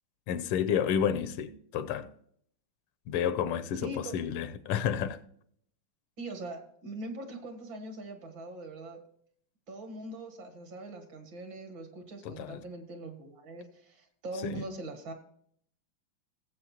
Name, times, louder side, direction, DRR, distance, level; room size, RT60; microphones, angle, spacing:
voice 1, 0.3-2.1 3.1-5.2 12.2-12.6 14.4-14.6, left 8 dB, 85° left, 1.6 m, -30 dB
voice 2, 3.7-4.1 6.2-9.0 9.7-15.1, right 2 dB, 60° right, 2.1 m, -42 dB
17.0 x 7.7 x 2.9 m
omnidirectional pair, 2.4 m